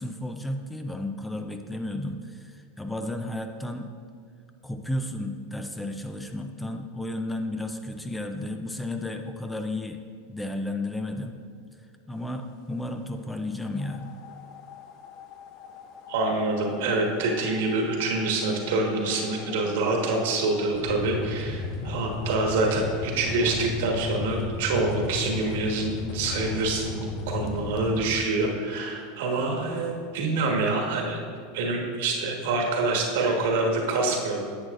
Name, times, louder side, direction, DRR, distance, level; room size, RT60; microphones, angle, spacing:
voice 1, 0.0-3.9 4.6-10.0 10.3-11.4 12.1-14.1, left 1 dB, 5° left, 6 dB, 0.5 m, -33 dB
sound 1, 13.7-28.1, left 3 dB, 50° left, 0.7 m, -36 dB
voice 2, 16.1-31.2 31.5-34.4, right 3 dB, 75° right, 1 dB, 1.4 m, -26 dB
10.5 x 7.5 x 2.5 m, 2.1 s
supercardioid pair, 115°, 0 cm